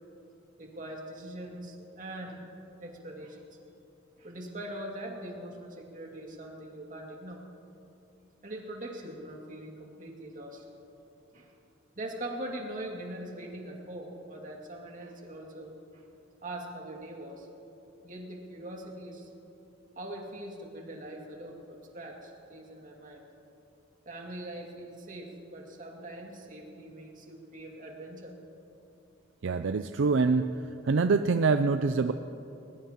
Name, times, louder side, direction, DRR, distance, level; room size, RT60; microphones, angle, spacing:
voice 1, 0.6-2.5 2.8-3.5 4.2-7.4 8.4-10.7 11.3-11.6 12.0-16.1 16.4-17.5 18.0-19.3 20.0-23.2 24.1-28.3, right 1 dB, 45° right, 0 dB, 2.3 m, -42 dB
voice 2, 29.4-30.5 30.8-32.1, right 4 dB, 70° right, 9 dB, 0.4 m, -25 dB
21.0 x 19.5 x 3.0 m, 2.9 s
head